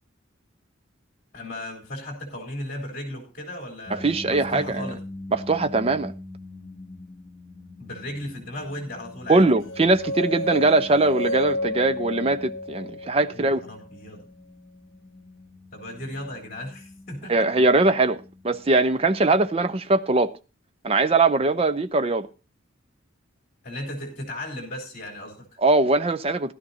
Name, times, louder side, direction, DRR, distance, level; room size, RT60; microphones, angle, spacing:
voice 1, 1.3-5.0 7.8-9.5 13.3-14.2 15.7-17.3 23.6-25.5, left 1 dB, 40° left, 3.5 m, -36 dB
sound 1, 3.9-19.7, left 1 dB, 5° left, 3.0 m, -43 dB
voice 2, 3.9-4.9 5.3-6.1 9.3-13.6 17.3-20.3 20.8-22.3 25.6-26.5, right 2 dB, 30° right, 0.5 m, -21 dB
sound 2, 9.7-13.8, left 1 dB, 70° left, 1.2 m, -31 dB
16.0 x 12.0 x 2.8 m
head